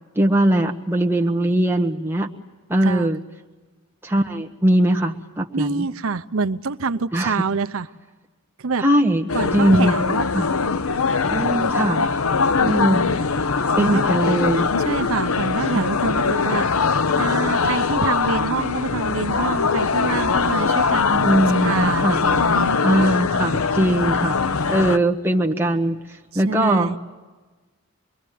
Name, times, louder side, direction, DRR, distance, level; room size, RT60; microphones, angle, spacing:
voice 1, 0.1-2.3 2.7-3.2 4.0-5.9 7.1-7.4 8.8-9.3 9.5-10.0 10.3-10.5 11.3-12.0 12.6-13.1 13.7-14.7 15.7-15.8 21.2-22.2 22.8-24.4 24.7-26.9, right 1 dB, 10° right, 1 dB, 1.4 m, -20 dB
voice 2, 5.5-7.9 8.6-8.8 9.3-10.3 12.6-13.1 13.8-14.0 14.8-16.7 17.2-22.8 24.2-24.3 26.3-27.0, right 4 dB, 80° right, 9 dB, 0.7 m, -26 dB
sound 1, 9.3-25.0, left 5 dB, 85° left, 0.8 m, -21 dB
26.0 x 22.0 x 9.3 m, 1.3 s
head